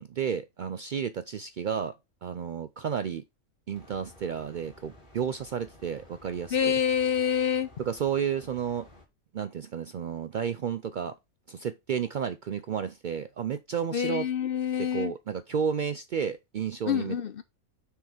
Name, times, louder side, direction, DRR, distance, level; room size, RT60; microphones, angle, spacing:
voice 1, 0.0-1.9 2.2-3.2 3.7-6.8 7.8-8.9 9.3-11.1 11.5-14.3 14.8-17.2, right 7 dB, 85° right, 0.4 m, -32 dB
sound 1, 3.7-9.0, left 1 dB, 40° left, 2.5 m, -54 dB
voice 2, 6.5-7.7 13.9-15.1 16.9-17.4, left 8 dB, 55° left, 0.7 m, -27 dB
6.3 x 4.7 x 4.9 m
omnidirectional pair, 1.4 m